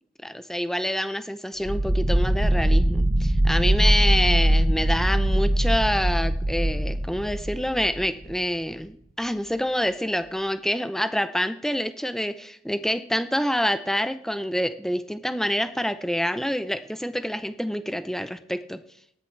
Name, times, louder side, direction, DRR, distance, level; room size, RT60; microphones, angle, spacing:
voice 1, 0.2-18.8, equal, ahead, 10 dB, 0.6 m, -27 dB
sound 1, 1.7-8.4, right 1 dB, 35° right, 0.9 m, -22 dB
18.5 x 13.5 x 3.3 m, 0.70 s
head